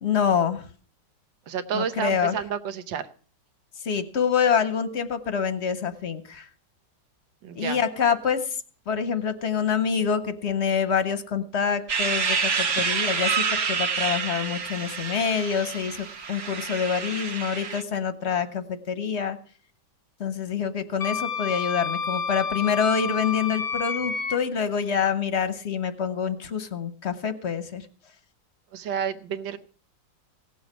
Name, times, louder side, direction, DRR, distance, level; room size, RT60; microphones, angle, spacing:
voice 1, 0.0-0.7 1.7-2.4 3.8-6.5 7.5-8.6 8.9-19.4 20.2-27.8, left 7 dB, 50° left, 11 dB, 0.9 m, -26 dB
voice 2, 1.5-3.1 7.4-7.8 12.7-12.8 28.7-29.6, right 7 dB, 90° right, 9 dB, 1.6 m, -30 dB
sound 1, 11.9-17.8, right 5 dB, 55° right, 1.6 m, -28 dB
Wind instrument woodwind instrument, 21.0-24.4, left 5 dB, 85° left, 0.5 m, -29 dB
17.0 x 7.1 x 6.0 m, 0.43 s
omnidirectional pair, 2.0 m